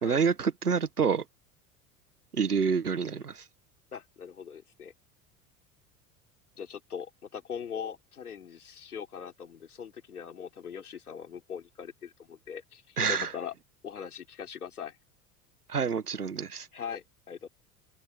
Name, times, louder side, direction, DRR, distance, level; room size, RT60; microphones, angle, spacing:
voice 1, 0.0-1.2 2.3-3.4 13.0-13.3 15.7-16.7, right 6 dB, 90° right, 1.4 m, -27 dB
voice 2, 3.9-4.9 6.6-13.5 13.8-15.0 16.7-17.5, left 7 dB, 80° left, 3.9 m, -41 dB
open air
figure-of-eight pair, 75°, 44 cm